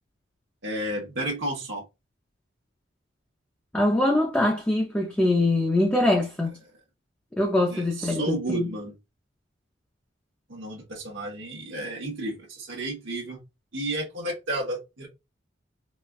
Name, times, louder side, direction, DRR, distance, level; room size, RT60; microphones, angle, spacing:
voice 1, 0.6-1.8 7.7-8.9 10.5-13.4 13.7-15.1, right 1 dB, 65° right, 1.1 m, -32 dB
voice 2, 3.7-6.5 7.3-8.7, left 1 dB, 5° left, 0.5 m, -23 dB
4.1 x 2.3 x 2.3 m
head